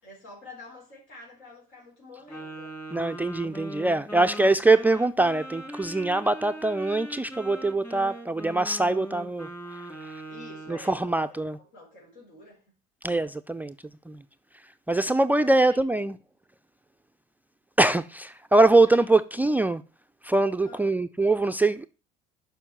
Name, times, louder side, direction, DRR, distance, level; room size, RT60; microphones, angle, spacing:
voice 1, 0.0-2.8 10.3-12.7 15.4-15.8 18.8-19.1 20.6-20.9, left 2 dB, 70° left, 4.1 m, -48 dB
Wind instrument woodwind instrument, 2.3-10.9, right 1 dB, 10° left, 2.5 m, -41 dB
voice 2, 2.9-9.5 10.0-10.1 10.7-11.6 13.0-13.7 14.1-14.2 14.9-16.1 17.8-19.8 20.2-21.9, right 2 dB, 10° right, 0.4 m, -23 dB
6.8 x 5.5 x 7.3 m
supercardioid pair, 75°, 20 cm